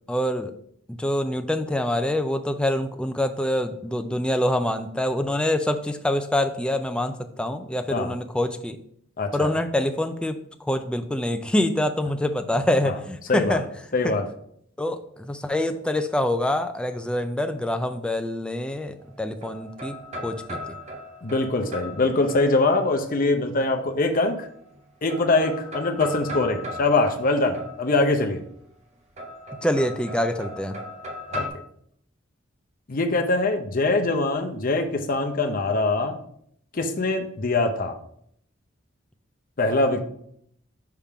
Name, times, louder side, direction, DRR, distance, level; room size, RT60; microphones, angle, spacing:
voice 1, 0.1-0.5 0.9-8.8 9.3-13.6 14.0-14.1 14.8-20.0 20.2-20.4 29.6-30.8, left 1 dB, 5° left, 7 dB, 0.3 m, -25 dB
voice 2, 9.2-9.6 12.8-12.9 13.3-13.6 13.9-14.3 21.2-24.5 25.0-28.4 31.3-31.5 32.9-36.2 36.7-37.9 39.6-40.0, left 2 dB, 45° left, 6 dB, 0.6 m, -23 dB
sound 1, 19.0-23.0 24.1-24.8 25.1-28.3 29.2-31.5, left 1 dB, 35° right, 0.9 m, -37 dB
5.7 x 3.6 x 4.8 m, 0.69 s
head